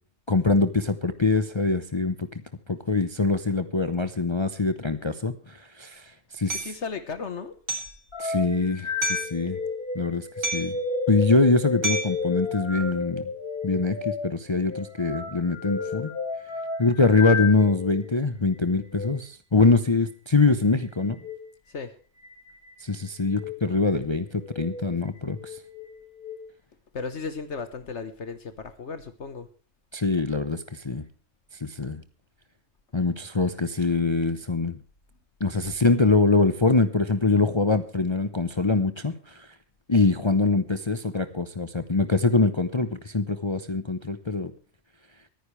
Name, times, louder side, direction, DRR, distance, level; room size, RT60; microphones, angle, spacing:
voice 1, 0.3-2.3 2.7-6.6 8.2-9.6 9.9-10.8 11.1-13.3 13.6-16.1 16.8-21.2 22.8-25.6 29.9-31.0 31.6-32.0 32.9-34.8 35.4-39.5 39.9-44.5, left 3 dB, 25° left, 11 dB, 0.8 m, -24 dB
voice 2, 6.5-7.5 21.7-21.9 26.9-29.5, left 5 dB, 65° left, 10 dB, 1.5 m, -35 dB
Hammer, 6.5-6.7 7.7-8.0 9.0-9.4 10.4-10.8 11.8-12.2, right 2 dB, 55° right, 3.7 m, -29 dB
sound 1, 8.1-18.1 18.8-19.1 21.1-21.4 22.2-22.7 23.3-23.6 24.4-24.9 25.3-26.4, left 4 dB, 50° left, 3.3 m, -32 dB
24.0 x 9.9 x 3.2 m, 0.40 s
omnidirectional pair, 1.3 m